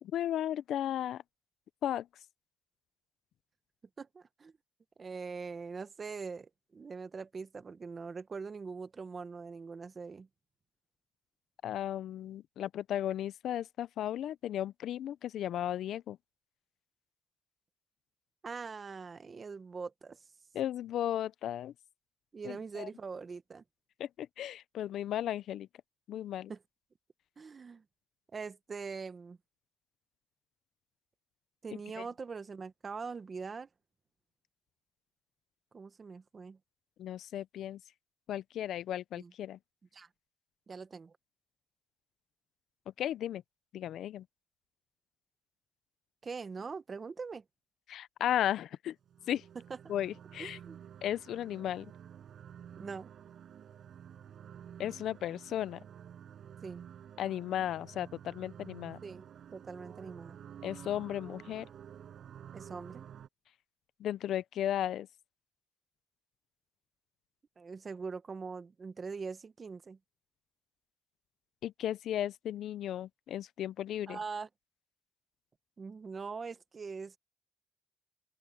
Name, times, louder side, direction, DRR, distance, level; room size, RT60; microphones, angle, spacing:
voice 1, 0.0-1.2 1.8-2.1 11.6-16.2 20.5-21.7 22.4-22.9 24.0-25.7 26.1-26.5 32.0-32.1 37.0-37.8 38.3-39.6 43.0-43.4 43.7-44.2 47.9-49.0 49.3-49.4 49.9-50.6 51.0-51.9 54.8-55.8 57.2-59.0 60.6-61.7 64.0-65.1 71.6-74.2, left 11 dB, 75° left, 0.5 m, -35 dB
voice 2, 4.0-4.5 5.0-10.3 18.4-20.2 22.3-23.6 26.5-26.6 27.4-27.8 28.3-29.4 31.6-33.7 35.7-36.6 39.2-39.3 39.9-40.1 40.7-41.1 46.2-47.4 50.4-50.8 52.8-53.1 56.6-56.8 59.0-59.3 59.5-60.4 62.5-63.1 67.6-70.0 74.1-74.5 75.8-77.2, right 5 dB, 35° right, 1.3 m, -42 dB
sound 1, 49.0-63.3, right 9 dB, 65° right, 5.7 m, -51 dB
open air
cardioid pair, 90°, 0 cm